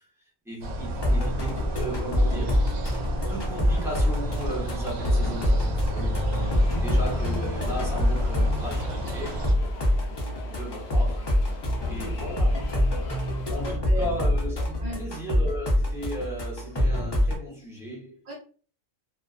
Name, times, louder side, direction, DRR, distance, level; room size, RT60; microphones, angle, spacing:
voice 1, 0.4-2.6 3.0-6.2 6.7-9.5 10.5-11.3 11.9-12.6 13.5-18.2, equal, 5° right, 0.7 m, -36 dB
sound 1, 0.6-9.5, right 1 dB, 80° right, 0.8 m, -32 dB
sound 2, 1.0-17.3, left 1 dB, 30° left, 0.5 m, -25 dB
sound 3, 6.4-13.8, left 4 dB, 70° left, 0.8 m, -43 dB
voice 2, 13.6-14.0 14.8-15.1 18.3-18.4, right 1 dB, 50° right, 1.0 m, -37 dB
2.3 x 2.3 x 2.3 m
omnidirectional pair, 1.1 m